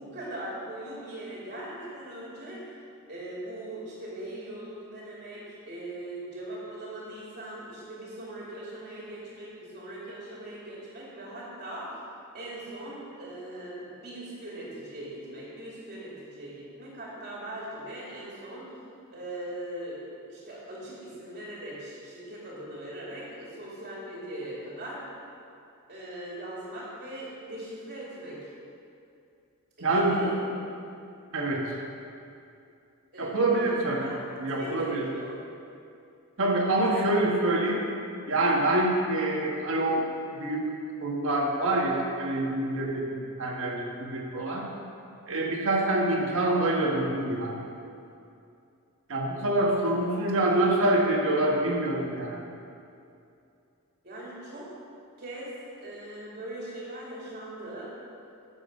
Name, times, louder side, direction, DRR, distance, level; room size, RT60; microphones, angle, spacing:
voice 1, 0.0-2.6 3.1-12.0 12.3-18.6 19.1-20.0 20.3-25.0 25.9-28.5 29.8-30.4 33.1-34.2 34.6-35.3 50.0-50.5 54.0-54.7 55.2-55.5 55.8-57.9, right 1 dB, 40° right, -6 dB, 2.5 m, -40 dB
voice 2, 29.8-30.2 31.3-31.6 33.2-34.0 34.4-35.0 36.4-37.9 38.3-40.0 40.4-40.7 41.0-44.6 45.3-47.5 49.1-52.3, right 2 dB, 60° right, -1 dB, 1.5 m, -26 dB
12.5 x 7.2 x 5.3 m, 2.6 s
head